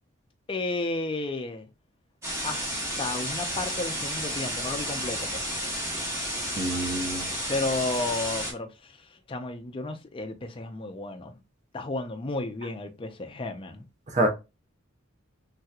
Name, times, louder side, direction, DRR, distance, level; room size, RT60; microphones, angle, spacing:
voice 1, 0.5-1.7 2.4-2.7 3.0-5.4 7.5-11.3 11.7-13.8, left 2 dB, 25° left, 0.4 m, -32 dB
sound 1, 2.2-8.5, equal, 15° right, 1.0 m, -32 dB
voice 2, 6.6-7.2 14.1-14.3, right 1 dB, 35° right, 0.6 m, -26 dB
3.2 x 2.9 x 2.3 m
head